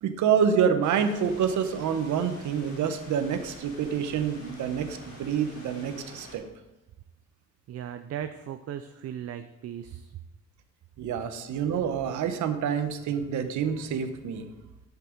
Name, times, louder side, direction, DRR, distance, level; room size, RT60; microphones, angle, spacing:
voice 1, 0.0-6.4 11.0-14.5, right 7 dB, 75° right, 9 dB, 1.0 m, -27 dB
sound 1, 0.8-6.4, left 1 dB, 80° left, 3.5 m, -48 dB
voice 2, 7.7-10.1, right 10 dB, 55° right, 9 dB, 0.5 m, -37 dB
8.7 x 5.9 x 4.5 m, 1.0 s
cardioid pair, 90°, 30 cm